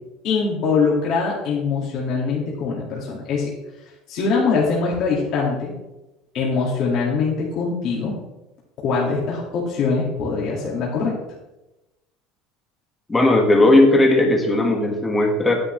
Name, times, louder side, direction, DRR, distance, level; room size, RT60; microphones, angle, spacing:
voice 1, 0.2-3.5 4.1-5.7 6.3-8.1 8.8-11.1, left 4 dB, 45° left, -5 dB, 2.1 m, -22 dB
voice 2, 13.1-15.5, left 2 dB, 10° left, 2 dB, 1.5 m, -16 dB
11.0 x 9.9 x 3.2 m, 1.0 s
cardioid pair, 170°, 0 cm